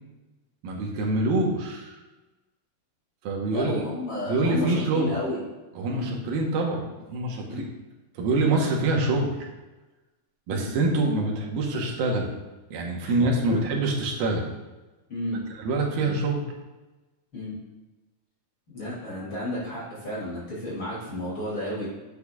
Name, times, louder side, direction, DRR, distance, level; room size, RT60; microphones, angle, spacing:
voice 1, 0.6-2.0 3.2-3.8 4.3-5.2 5.8-7.6 8.2-9.3 10.5-12.3 12.7-14.5 15.6-16.4, right 2 dB, 85° right, -1 dB, 3.0 m, -25 dB
voice 2, 3.5-5.4 5.9-6.1 7.4-7.7 8.4-8.6 10.5-10.7 13.0-13.1 15.1-15.4 16.0-16.1 17.3-17.6 18.7-21.8, left 1 dB, 35° left, -7 dB, 3.3 m, -32 dB
9.5 x 8.6 x 2.4 m, 1.1 s
omnidirectional pair, 4.1 m